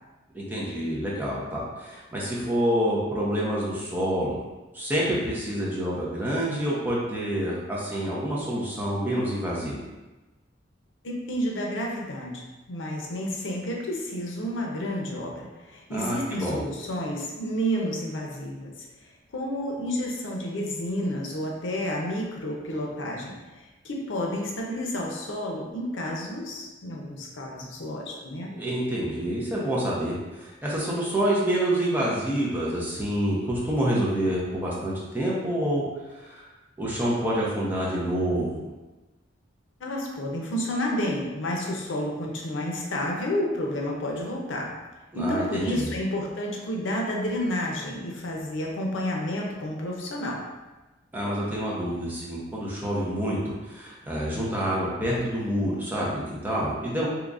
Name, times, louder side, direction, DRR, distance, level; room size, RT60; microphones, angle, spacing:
voice 1, 0.3-4.4 4.7-9.8 15.9-16.6 28.6-35.9 36.1-36.5 36.8-38.6 45.1-45.9 51.1-57.1, equal, 10° right, -6 dB, 0.7 m, -27 dB
voice 2, 11.0-12.4 12.7-18.9 19.3-28.6 39.8-44.7 45.1-50.4, equal, 90° left, 0 dB, 0.6 m, -30 dB
3.7 x 2.9 x 2.4 m, 1.1 s
head